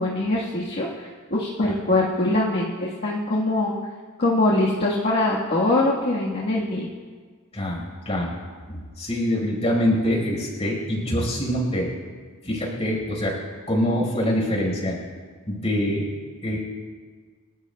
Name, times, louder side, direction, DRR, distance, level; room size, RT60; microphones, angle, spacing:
voice 1, 0.0-3.7 4.2-6.9, left 2 dB, 50° left, -5 dB, 1.6 m, -23 dB
voice 2, 7.5-8.3 8.7-11.9 12.4-13.4 13.7-15.0 15.5-16.1 16.4-16.6, equal, 30° left, -1 dB, 4.8 m, -24 dB
29.5 x 13.0 x 2.3 m, 1.6 s
head